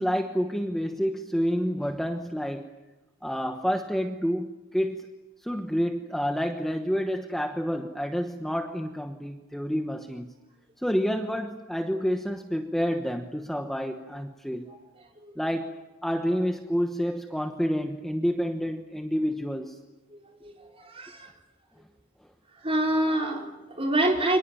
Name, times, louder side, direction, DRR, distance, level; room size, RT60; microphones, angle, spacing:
voice 1, 0.0-2.7 3.2-5.1 5.4-10.3 10.8-14.7 15.4-15.7 16.0-19.8, equal, ahead, 4 dB, 1.1 m, -29 dB
voice 2, 20.1-21.3 22.6-24.4, right 1 dB, 25° right, 0 dB, 4.7 m, -27 dB
30.0 x 25.0 x 7.3 m, 1.2 s
head